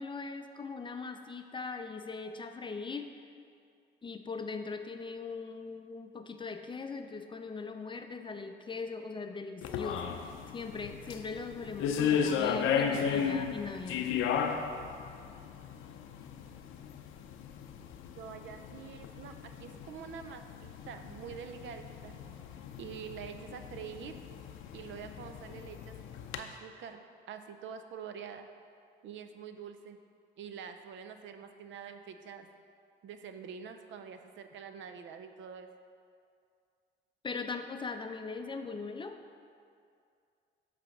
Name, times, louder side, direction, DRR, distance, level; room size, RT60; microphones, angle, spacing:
voice 1, 0.0-3.2 4.0-10.1 10.5-14.1 37.2-39.2, left 4 dB, 25° left, 7 dB, 0.4 m, -40 dB
sound 1, 9.6-26.4, left 7 dB, 85° left, 0.5 m, -35 dB
voice 2, 18.2-22.2 22.8-24.2 24.7-26.0 26.4-27.0 27.3-28.5 29.0-30.0 30.4-32.5 33.0-35.7, right 7 dB, 70° right, 7 dB, 0.5 m, -46 dB
7.6 x 3.3 x 5.9 m, 2.4 s
cardioid pair, 90°, 20 cm